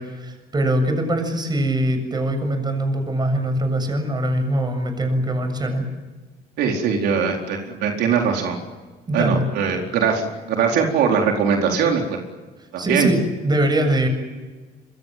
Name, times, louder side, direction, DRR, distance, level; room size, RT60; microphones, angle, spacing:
voice 1, 0.0-5.9 9.1-9.4 12.6-14.1, right 1 dB, 25° right, 7 dB, 7.3 m, -22 dB
voice 2, 6.6-8.6 9.1-12.2 12.7-13.1, right 6 dB, 80° right, 1 dB, 4.4 m, -21 dB
27.0 x 23.0 x 7.6 m, 1.3 s
cardioid pair, 110°, 17 cm